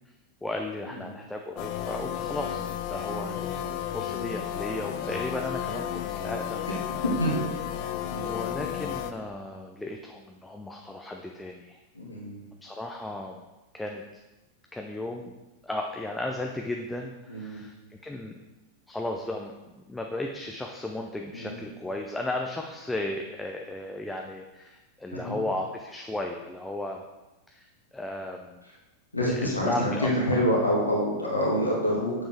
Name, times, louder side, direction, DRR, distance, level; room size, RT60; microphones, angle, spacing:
voice 1, 0.4-6.7 8.2-11.8 12.6-13.4 13.7-14.2 14.7-15.4 15.6-18.4 18.9-27.0 27.5-28.6 29.3-30.4, left 1 dB, 5° left, 1 dB, 0.7 m, -35 dB
sound 1, 1.6-9.1, left 10 dB, 45° left, 0.6 m, -33 dB
voice 2, 7.0-7.4 8.1-8.3 11.9-12.4 17.3-17.6 21.3-21.6 25.1-25.4 29.1-32.1, equal, 85° left, -4 dB, 2.0 m, -27 dB
8.7 x 7.3 x 3.5 m, 1.1 s
figure-of-eight pair, 90°, 0 cm